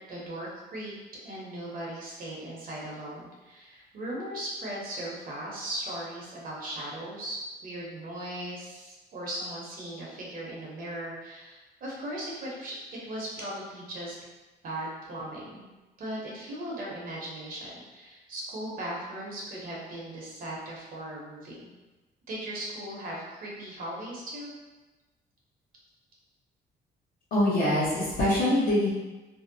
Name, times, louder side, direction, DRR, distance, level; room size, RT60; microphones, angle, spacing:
voice 1, 0.1-1.0 1.2-12.8 13.0-14.2 14.6-15.6 16.0-21.7 22.3-24.5, right 1 dB, 50° right, -4 dB, 0.8 m, -38 dB
voice 2, 27.3-28.9, left 1 dB, 55° left, -6 dB, 0.9 m, -24 dB
2.6 x 2.0 x 2.6 m, 1.2 s
cardioid pair, 115°, 18 cm